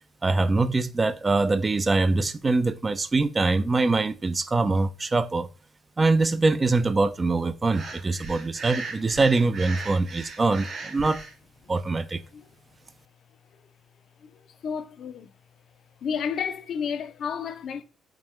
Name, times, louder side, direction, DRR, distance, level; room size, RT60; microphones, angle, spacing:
voice 1, 0.2-5.5 6.0-11.2 11.7-12.2, right 3 dB, 30° right, 0.4 m, -23 dB
Breathing, 7.7-11.3, right 4 dB, 55° right, 0.8 m, -38 dB
voice 2, 14.6-15.3 16.0-17.8, left 7 dB, 60° left, 0.5 m, -31 dB
3.6 x 2.2 x 3.1 m
supercardioid pair, 70°, 0 cm